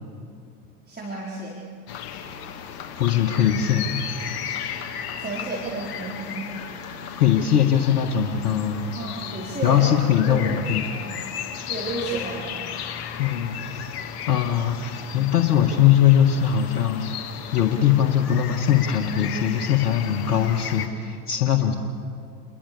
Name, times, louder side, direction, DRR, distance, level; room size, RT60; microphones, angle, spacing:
voice 1, 0.9-1.6 5.1-6.5 8.9-9.9 10.2-11.2 11.7-12.6, right 3 dB, 20° right, -3 dB, 4.8 m, -32 dB
sound 1, 1.9-20.9, left 8 dB, 50° left, 2.6 m, -35 dB
voice 2, 3.0-4.4 7.1-8.9 9.6-10.9 13.2-13.8 14.3-17.1 17.5-21.7, left 9 dB, 75° left, 1 dB, 2.0 m, -21 dB
29.0 x 22.0 x 7.1 m, 2.4 s
hypercardioid pair, 85°, 46 cm